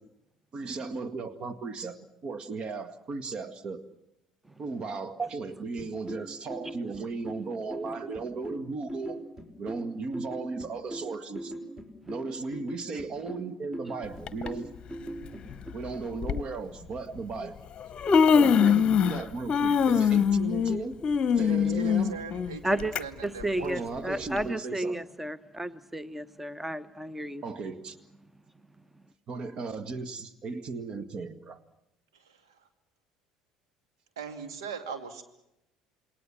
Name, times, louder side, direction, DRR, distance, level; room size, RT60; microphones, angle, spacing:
voice 1, 0.5-3.8 4.6-9.2 9.6-11.5 12.1-14.7 15.7-17.6 18.3-21.0 21.4-22.2 23.6-25.0 27.4-28.0 29.3-31.6, right 4 dB, 40° right, 14 dB, 1.9 m, -36 dB
sound 1, 5.8-15.7, right 1 dB, 25° right, 5.0 m, -41 dB
Human voice, 14.3-14.5 15.5-15.6 16.2-16.4 17.4-17.5 17.8-19.2 19.5-23.0 23.4-23.5 24.4-24.5, left 7 dB, 40° left, 1.0 m, -23 dB
voice 2, 18.4-18.7 22.6-22.9 23.2-27.4, right 1 dB, 10° right, 17 dB, 1.0 m, -32 dB
voice 3, 21.5-23.9 32.2-32.6 34.2-35.2, right 5 dB, 75° right, 7 dB, 2.5 m, -40 dB
28.0 x 21.0 x 7.4 m, 0.85 s
figure-of-eight pair, 60°, 2 cm